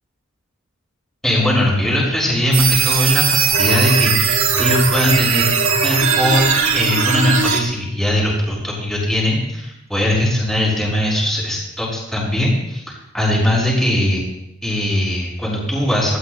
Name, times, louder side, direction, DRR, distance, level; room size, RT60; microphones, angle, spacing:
voice 1, 1.2-5.5 5.8-14.2 14.6-16.2, left 1 dB, ahead, -5 dB, 6.4 m, -20 dB
sound 1, 2.5-7.6, right 6 dB, 70° right, 1.8 m, -18 dB
19.5 x 18.0 x 2.3 m, 0.84 s
head